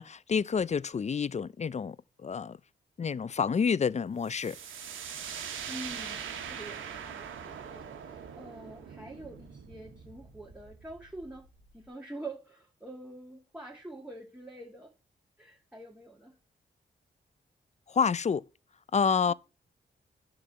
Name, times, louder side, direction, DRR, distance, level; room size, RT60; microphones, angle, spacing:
voice 1, 0.0-2.0 2.2-2.6 3.0-4.6 17.9-18.4 18.9-19.3, left 6 dB, 35° left, 0.5 m, -28 dB
sound 1, 4.3-11.9, right 7 dB, 85° right, 1.3 m, -42 dB
voice 2, 5.7-11.5 11.7-14.9 15.4-16.4 19.3-19.4, right 2 dB, 5° right, 2.4 m, -46 dB
9.9 x 4.0 x 6.8 m
supercardioid pair, 45°, 20 cm